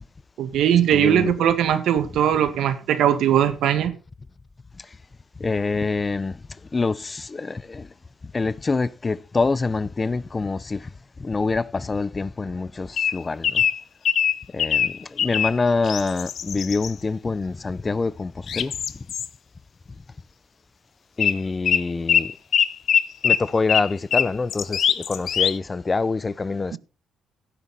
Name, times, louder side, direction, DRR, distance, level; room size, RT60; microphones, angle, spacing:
voice 1, 0.4-3.9, right 10 dB, 80° right, 1.8 m, -20 dB
voice 2, 0.9-1.3 5.4-6.4 6.7-7.9 8.3-10.9 11.2-13.6 14.5-18.7 21.2-22.3 23.2-26.8, left 3 dB, 25° left, 0.5 m, -25 dB
sound 1, 13.0-15.6 15.9-16.9 18.5-19.3 21.2-21.4 21.7-25.6, left 8 dB, 60° left, 0.7 m, -22 dB
16.0 x 7.1 x 4.2 m
cardioid pair, 90°, 0 cm